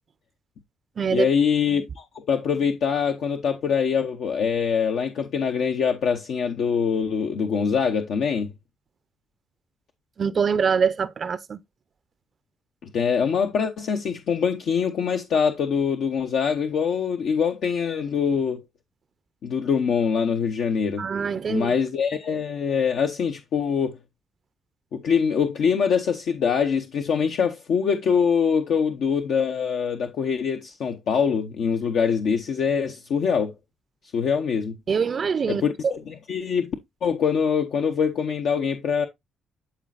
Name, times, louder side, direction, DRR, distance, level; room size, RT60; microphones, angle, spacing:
voice 1, 1.1-8.5 12.9-18.6 19.4-21.0 21.5-24.0 24.9-33.5 34.1-34.8 35.5-36.0 36.3-36.7 37.0-39.1, left 6 dB, 70° left, 0.8 m, -24 dB
voice 2, 10.2-11.6 21.0-21.7 34.9-35.6, right 6 dB, 45° right, 0.4 m, -24 dB
11.5 x 4.3 x 2.4 m
cardioid pair, 90°, 0 cm